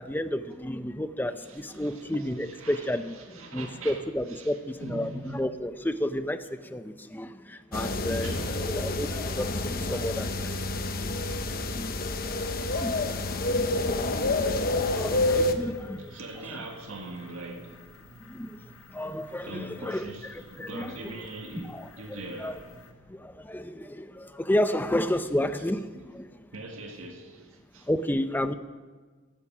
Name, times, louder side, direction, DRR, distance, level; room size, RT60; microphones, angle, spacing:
voice 1, 0.0-10.7 11.0-11.9 12.5-14.1 14.4-16.2 18.3-21.1 21.6-22.6 23.1-26.4 27.9-28.5, left 1 dB, 10° left, 0.6 m, -32 dB
voice 2, 1.2-5.5 8.2-9.1 16.0-17.8 19.4-22.8 25.2-25.8 26.5-28.1, right 2 dB, 75° right, 1.8 m, -43 dB
sound 1, 7.7-15.5, left 2 dB, 45° left, 1.0 m, -28 dB
sound 2, 12.7-22.9, left 1 dB, 85° left, 1.3 m, -52 dB
16.0 x 13.5 x 6.1 m
head